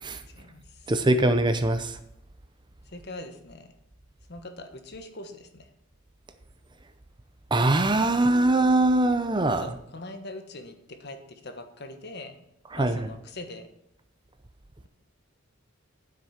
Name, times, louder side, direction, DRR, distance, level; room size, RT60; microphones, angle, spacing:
voice 1, 0.4-0.9 2.9-3.7 4.3-5.7 9.6-12.4 12.8-13.7, left 2 dB, 50° left, 7 dB, 1.4 m, -42 dB
voice 2, 0.9-2.0 7.5-9.7 12.7-13.1, right 2 dB, 20° right, 10 dB, 0.6 m, -22 dB
9.5 x 7.7 x 5.8 m, 0.79 s
head